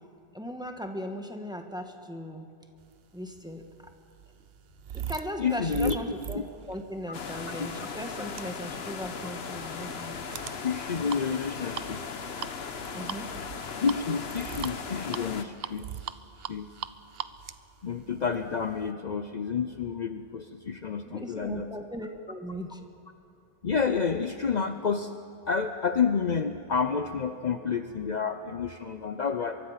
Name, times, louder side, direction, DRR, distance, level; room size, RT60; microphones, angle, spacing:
voice 1, 0.3-2.5 3.1-3.6 4.9-10.1 12.9-13.3 21.0-22.8, equal, 5° right, 4 dB, 1.5 m, -38 dB
sound 1, 3.2-18.9, right 9 dB, 70° right, 0.9 m, -41 dB
voice 2, 5.4-6.0 7.6-7.7 10.6-12.0 13.8-16.2 16.5-16.7 17.8-21.7 23.6-25.1 25.5-29.6, left 6 dB, 50° left, 8 dB, 0.8 m, -29 dB
sound 2, 7.1-15.4, left 5 dB, 75° left, 1.3 m, -38 dB
23.5 x 23.5 x 5.8 m, 2.5 s
omnidirectional pair, 1.1 m